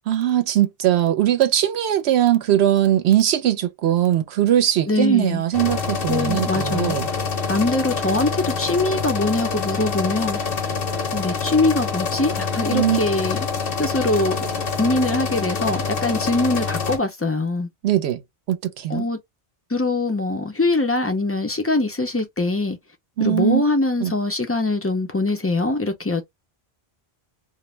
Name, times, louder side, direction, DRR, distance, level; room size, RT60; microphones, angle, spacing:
voice 1, 0.1-7.1 12.7-13.0 17.8-18.2 18.5-19.1 23.2-23.6 24.0-24.1, right 11 dB, 85° right, 0.9 m, -20 dB
voice 2, 4.9-5.4 6.1-7.0 7.5-10.4 11.1-13.5 13.8-14.4 14.8-17.7 18.9-19.2 19.7-22.8 23.2-26.2, left 2 dB, 20° left, 0.4 m, -22 dB
sound 1, 5.5-17.0, left 5 dB, 65° left, 1.0 m, -26 dB
2.5 x 2.0 x 3.1 m
omnidirectional pair, 1.1 m